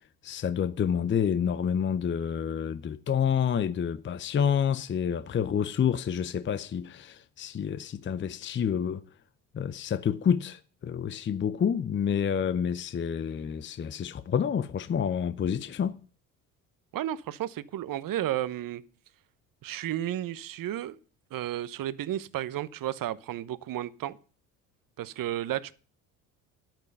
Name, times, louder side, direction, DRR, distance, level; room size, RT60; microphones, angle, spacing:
voice 1, 0.2-9.0 9.5-16.0, left 8 dB, 25° left, 0.7 m, -28 dB
voice 2, 16.9-18.8 19.6-21.0 21.3-24.2 25.0-25.7, right 12 dB, 45° right, 1.0 m, -33 dB
10.5 x 9.0 x 5.5 m
hypercardioid pair, 65°, 46 cm